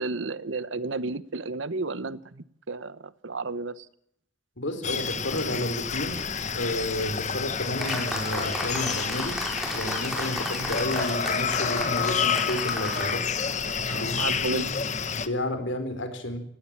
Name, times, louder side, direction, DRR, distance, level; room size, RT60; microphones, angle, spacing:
voice 1, 0.0-3.9 13.9-14.7, right 3 dB, 75° right, 1.0 m, -32 dB
voice 2, 4.6-6.2 6.5-9.4 9.7-13.3 13.9-14.6 15.2-16.4, left 1 dB, 75° left, 4.1 m, -31 dB
sound 1, 4.8-15.3, left 6 dB, 35° left, 1.2 m, -29 dB
sound 2, 7.8-13.2, equal, ahead, 5.5 m, -34 dB
18.5 x 17.0 x 8.7 m
head